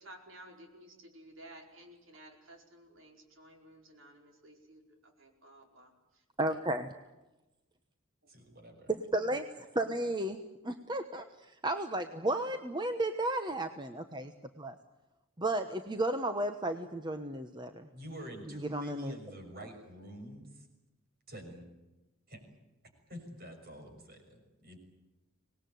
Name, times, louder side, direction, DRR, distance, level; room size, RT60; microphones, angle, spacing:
voice 1, 0.0-6.2 6.5-6.8 11.9-12.3, right 1 dB, 65° right, 3 dB, 4.9 m, -55 dB
voice 2, 6.4-6.9 9.1-14.7 15.4-17.9 18.7-19.1, right 1 dB, 20° right, 7 dB, 1.1 m, -34 dB
voice 3, 8.3-8.9 17.9-20.7 21.3-21.7 22.3-22.4 23.1-24.8, equal, 45° right, 5 dB, 6.4 m, -47 dB
25.5 x 20.0 x 9.4 m, 1.0 s
head